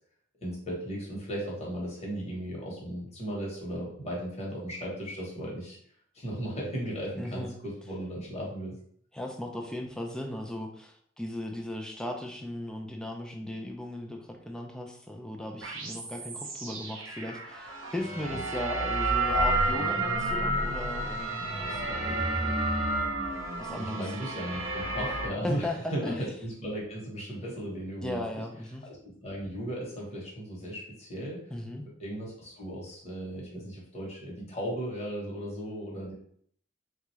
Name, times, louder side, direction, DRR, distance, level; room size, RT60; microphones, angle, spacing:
voice 1, 0.4-5.8 6.1-8.8 18.3-18.4 23.8-28.4 28.8-31.5 31.8-36.1, equal, 35° left, -3 dB, 1.1 m, -36 dB
voice 2, 7.2-7.5 9.1-22.5 23.6-24.0 25.4-26.2 28.0-28.8 31.5-31.9, left 1 dB, 5° left, 2 dB, 0.4 m, -37 dB
sound 1, 15.6-25.3, right 2 dB, 75° right, 0.7 m, -30 dB
3.7 x 2.3 x 3.1 m, 0.63 s
head